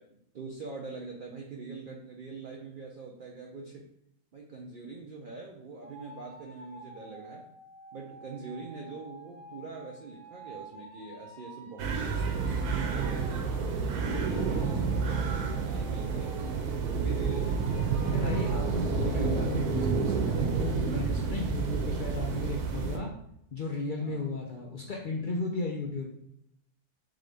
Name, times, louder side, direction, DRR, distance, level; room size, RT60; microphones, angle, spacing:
voice 1, 0.0-3.9 4.3-7.5 7.9-13.4 13.7-17.8 24.0-24.3, right 3 dB, 65° right, 0 dB, 0.5 m, -44 dB
sound 1, 5.8-13.4 14.1-16.7 17.2-18.6, right 2 dB, 25° right, 1.0 m, -49 dB
sound 2, 11.8-23.0, right 5 dB, 90° right, 1.2 m, -29 dB
voice 2, 18.1-23.1 23.5-26.2, left 3 dB, 90° left, -1 dB, 0.4 m, -34 dB
3.8 x 3.8 x 3.4 m, 0.77 s
omnidirectional pair, 1.6 m